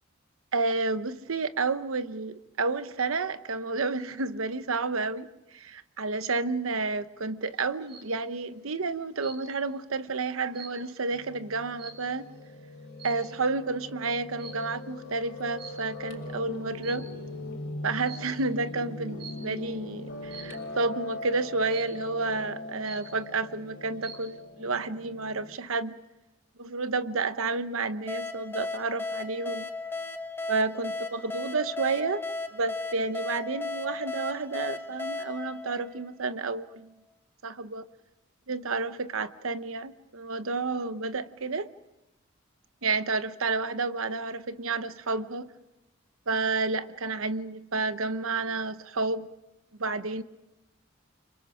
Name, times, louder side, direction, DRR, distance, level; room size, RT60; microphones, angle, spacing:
voice 1, 0.5-12.3 13.0-17.1 17.8-25.9 26.6-29.7 30.5-32.2 32.5-36.9 37.4-37.9 38.5-41.7 42.8-45.5 46.3-49.3 49.8-50.2, right 3 dB, 85° right, 1.0 m, -30 dB
sound 1, 7.5-8.2 9.2-9.7 10.1-12.4 12.9-13.4 14.4-14.8 15.6-16.2 16.7-17.4 18.1-18.4 19.2-19.6 20.3-20.7 21.7-22.2 22.6-22.7 22.9-23.5 23.8-24.4, right 4 dB, 55° right, 7.0 m, -47 dB
Piano, 11.1-25.5, left 2 dB, 60° left, 4.5 m, -41 dB
sound 2, 28.1-36.5, left 3 dB, 10° left, 1.1 m, -36 dB
29.5 x 26.0 x 5.1 m
head